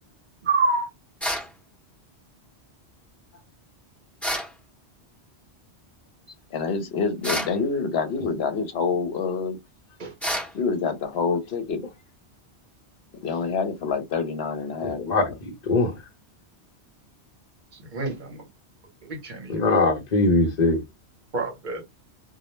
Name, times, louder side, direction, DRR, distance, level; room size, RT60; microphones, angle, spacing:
voice 1, 0.4-0.9 10.0-10.1 17.9-18.4 19.0-19.6 21.3-21.8, right 3 dB, 50° right, 0.9 m, -27 dB
sound 1, 1.2-1.5 4.2-4.5 7.2-7.6 10.2-10.5, equal, ahead, 0.6 m, -28 dB
voice 2, 6.5-9.6 10.5-11.8 13.2-15.3, left 5 dB, 70° left, 0.9 m, -27 dB
voice 3, 14.8-16.0 19.5-20.8, left 2 dB, 50° left, 0.6 m, -22 dB
2.3 x 2.0 x 3.0 m
omnidirectional pair, 1.1 m